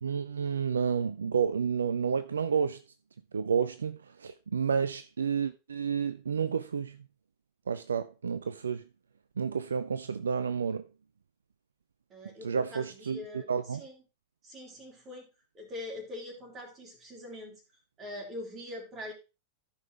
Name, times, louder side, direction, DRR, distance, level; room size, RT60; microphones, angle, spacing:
voice 1, 0.0-2.8 3.3-7.0 7.7-8.8 9.4-10.8 12.4-13.2 13.5-13.8, right 6 dB, 70° right, 0.4 m, -30 dB
voice 2, 12.1-14.0 14.4-15.3 15.5-17.6 18.0-19.1, left 1 dB, 25° right, 3.9 m, -43 dB
14.0 x 5.7 x 3.4 m
figure-of-eight pair, 90°, 0 cm